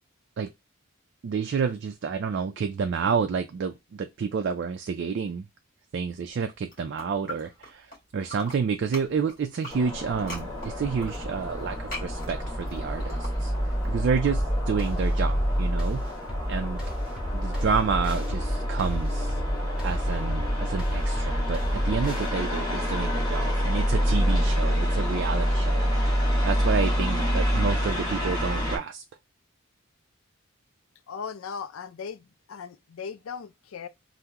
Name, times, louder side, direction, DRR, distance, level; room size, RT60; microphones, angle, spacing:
voice 1, 1.2-5.4 5.9-7.9 8.1-13.5 13.8-16.0 16.5-16.8 17.3-19.4 19.8-26.1 26.4-29.0, right 6 dB, 55° right, 0.3 m, -29 dB
sound 1, 6.3-8.0 8.2-13.9, equal, 40° left, 1.8 m, -42 dB
sound 2, 9.7-28.8, equal, 20° left, 1.5 m, -27 dB
sound 3, 14.3-22.3, equal, 5° right, 0.9 m, -34 dB
voice 2, 31.1-33.9, left 6 dB, 75° left, 0.4 m, -38 dB
3.5 x 2.0 x 2.8 m
head